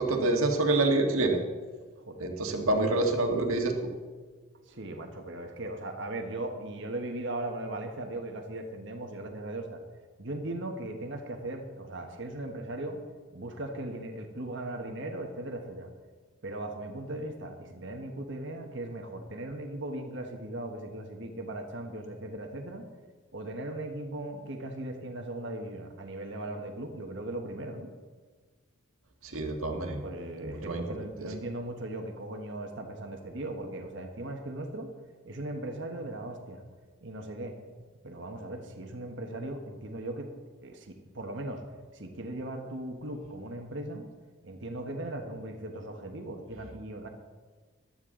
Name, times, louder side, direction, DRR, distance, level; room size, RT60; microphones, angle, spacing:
voice 1, 0.0-1.4 2.2-3.7 29.2-30.0 30.4-30.8 31.2-31.3, right 2 dB, 75° right, 2 dB, 1.7 m, -27 dB
voice 2, 2.0-2.3 4.7-9.8 10.2-13.0 13.3-15.9 16.4-22.8 23.3-27.9 30.0-34.9 35.2-36.6 37.0-37.5 38.0-40.3 40.6-41.6 41.9-44.0 44.4-47.1, right 1 dB, 55° right, 3 dB, 1.3 m, -38 dB
15.0 x 12.0 x 3.8 m, 1.5 s
head